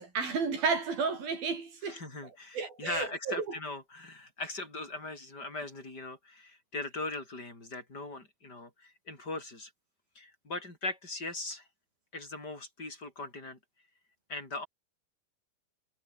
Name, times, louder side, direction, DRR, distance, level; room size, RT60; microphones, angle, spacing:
voice 1, 0.0-2.0 2.6-3.6, right 5 dB, 70° right, 7.2 m, -32 dB
voice 2, 1.8-9.7 10.1-11.7 12.1-13.6 14.3-14.7, left 2 dB, 25° left, 8.5 m, -40 dB
omnidirectional pair, 4.4 m